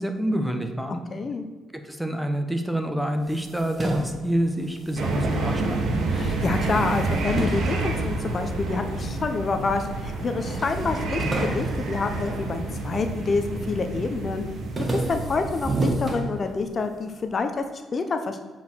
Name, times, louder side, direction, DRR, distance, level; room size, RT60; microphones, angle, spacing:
voice 1, 0.0-1.0 1.8-5.8, right 1 dB, 5° right, 6 dB, 1.1 m, -27 dB
voice 2, 0.9-1.5 6.1-14.4 14.9-17.6 17.9-18.4, left 4 dB, 40° left, 7 dB, 0.7 m, -28 dB
sound 1, 3.2-5.8 6.2-8.7 9.3-10.0 10.2-10.3 10.6-13.2 13.6-14.0 14.3-16.9, right 2 dB, 25° right, 1.7 m, -32 dB
sound 2, 5.0-15.8, right 2 dB, 70° right, 1.7 m, -29 dB
8.0 x 4.9 x 6.1 m, 1.4 s
cardioid pair, 90°, 0 cm